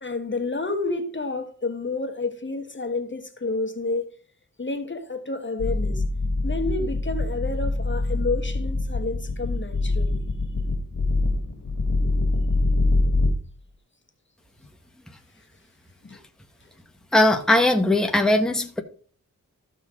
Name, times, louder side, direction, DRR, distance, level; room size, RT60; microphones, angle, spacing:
voice 1, 0.0-4.1 4.6-6.1 6.4-10.2 16.0-16.2, left 3 dB, 35° left, 1.3 m, -30 dB
sound 1, 5.6-13.4, left 2 dB, 65° left, 1.9 m, -24 dB
voice 2, 17.1-18.8, left 1 dB, ahead, 1.2 m, -19 dB
14.0 x 5.7 x 3.7 m
wide cardioid pair, 75°, 34 cm